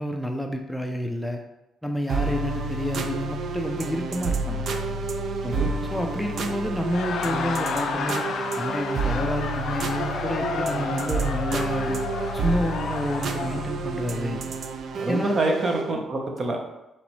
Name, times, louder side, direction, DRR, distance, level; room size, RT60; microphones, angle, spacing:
voice 1, 0.0-1.4 1.8-4.7 5.9-8.3 8.6-12.0 12.3-14.4 15.1-15.4, equal, ahead, 3 dB, 0.4 m, -29 dB
sound 1, 2.1-15.9, right 3 dB, 60° right, 0.4 m, -30 dB
sound 2, 5.5-14.4, right 1 dB, 80° right, 1.3 m, -48 dB
Laughter, 6.8-13.6, left 5 dB, 65° left, 0.4 m, -31 dB
voice 2, 15.0-16.6, right 2 dB, 40° right, 2 dB, 0.8 m, -26 dB
4.9 x 3.0 x 3.1 m, 0.93 s
cardioid pair, 90°, 0 cm